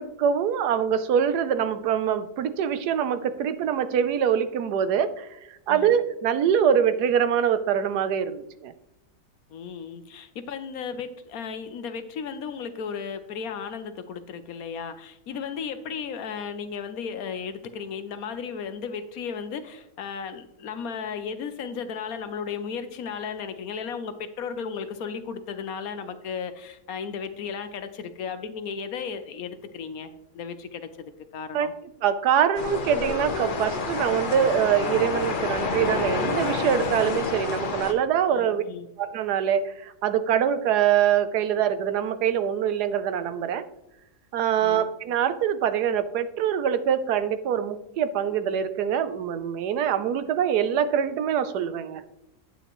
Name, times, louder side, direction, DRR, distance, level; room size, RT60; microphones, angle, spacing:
voice 1, 0.0-5.3 5.7-8.7 31.5-31.7 32.0-38.6 39.0-43.6 44.3-52.0, right 8 dB, 75° right, 11 dB, 1.2 m, -24 dB
voice 2, 9.5-31.7 38.3-38.9 44.6-44.9, left 6 dB, 65° left, 10 dB, 1.1 m, -35 dB
sound 1, 32.5-37.9, left 4 dB, 40° left, 0.8 m, -29 dB
9.6 x 9.2 x 3.0 m, 0.85 s
omnidirectional pair, 1.8 m